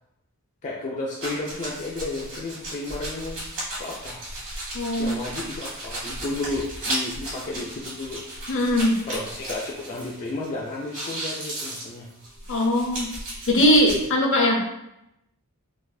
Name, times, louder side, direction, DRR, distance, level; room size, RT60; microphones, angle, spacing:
voice 1, 0.6-3.4 3.8-4.2 5.0-8.3 9.0-12.1, left 2 dB, 35° left, -3 dB, 0.4 m, -32 dB
sound 1, 1.2-10.5 10.7-14.0, right 1 dB, 60° right, 1.3 m, -35 dB
voice 2, 4.7-5.2 8.5-8.9 12.5-13.1 13.5-14.8, left 1 dB, 60° left, 0 dB, 0.7 m, -20 dB
4.0 x 2.4 x 2.6 m, 0.86 s
head